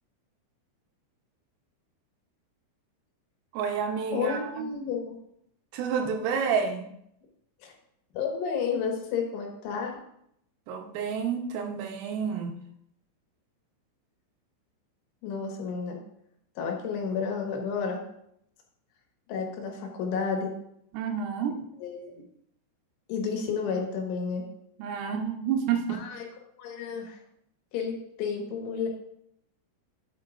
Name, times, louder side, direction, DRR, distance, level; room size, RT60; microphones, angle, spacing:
voice 1, 3.5-4.7 5.7-6.9 10.7-12.5 20.9-21.6 24.8-26.0, right 7 dB, 90° right, 4 dB, 3.7 m, -29 dB
voice 2, 4.1-5.2 7.6-7.7 8.1-10.0 15.2-16.0 16.6-18.0 19.3-20.5 21.8-22.2 23.1-24.4 25.9-26.3 26.6-27.2 27.7-28.9, left 5 dB, 75° left, 1 dB, 3.9 m, -31 dB
12.0 x 8.1 x 2.5 m, 0.73 s
omnidirectional pair, 5.7 m